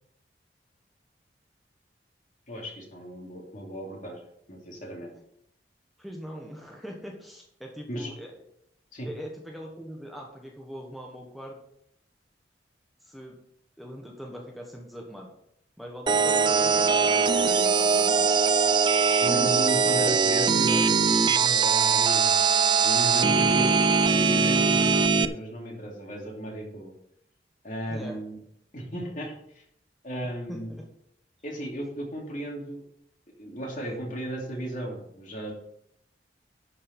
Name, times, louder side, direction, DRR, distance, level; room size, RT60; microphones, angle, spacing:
voice 1, 2.5-5.1 7.9-8.1 8.9-9.1 19.2-22.3 22.8-23.7 24.1-26.9 27.6-28.4 28.7-29.6 30.0-30.7 31.4-32.8 33.4-35.5, right 1 dB, 45° left, 0 dB, 2.8 m, -35 dB
voice 2, 6.0-8.3 9.0-11.6 13.0-13.4 13.8-15.3 15.8-18.3 19.8-20.1 23.1-23.7 27.9-28.2 30.2-30.8, equal, ahead, -1 dB, 1.3 m, -41 dB
sound 1, 16.1-25.3, right 5 dB, 25° right, 0.4 m, -21 dB
12.0 x 5.5 x 5.4 m, 0.73 s
head